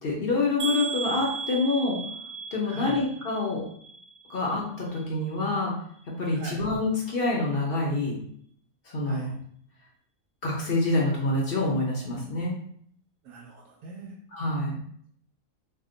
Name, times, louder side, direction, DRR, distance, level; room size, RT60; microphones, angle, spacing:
voice 1, 0.0-2.0 2.5-3.6 4.3-5.7 6.1-8.2 8.8-9.3 10.4-12.5 14.3-14.8, left 2 dB, 55° left, -3 dB, 0.6 m, -27 dB
sound 1, 0.6-4.6 4.9-5.5 5.9-6.1 6.4-6.5, right 5 dB, 60° right, 0.9 m, -36 dB
voice 2, 2.7-3.0 6.4-6.7 9.1-9.3 13.2-14.1, right 2 dB, 85° right, -3 dB, 1.1 m, -40 dB
2.8 x 2.1 x 3.7 m, 0.64 s
omnidirectional pair, 1.6 m